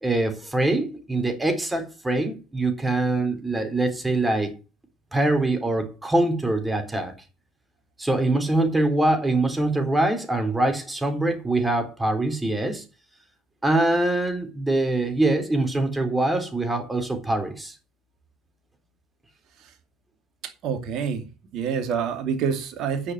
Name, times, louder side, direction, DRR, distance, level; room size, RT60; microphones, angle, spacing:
voice 1, 0.0-4.5 5.1-7.1 8.0-12.8 13.6-17.7, right 2 dB, 10° right, 3.8 m, -23 dB
voice 2, 20.4-23.1, right 7 dB, 55° right, 2.5 m, -27 dB
10.0 x 7.0 x 7.7 m
figure-of-eight pair, 60°, 0 cm